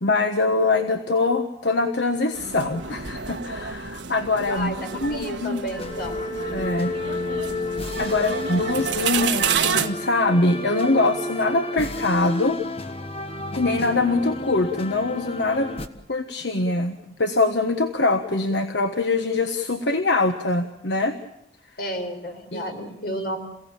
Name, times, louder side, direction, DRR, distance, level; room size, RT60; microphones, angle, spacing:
voice 1, 0.0-4.7 5.0-5.8 6.5-6.9 8.0-12.6 13.5-15.7 16.1-21.2 22.5-22.8 23.1-23.2, left 2 dB, 75° left, 7 dB, 1.3 m, -23 dB
sound 1, 2.3-9.9, right 6 dB, 85° right, 1.6 m, -29 dB
voice 2, 4.5-6.2 21.8-23.4, equal, 55° left, 4 dB, 4.4 m, -31 dB
sound 2, 5.8-15.9, left 2 dB, 30° left, 1.4 m, -31 dB
28.5 x 17.0 x 8.8 m, 0.80 s
head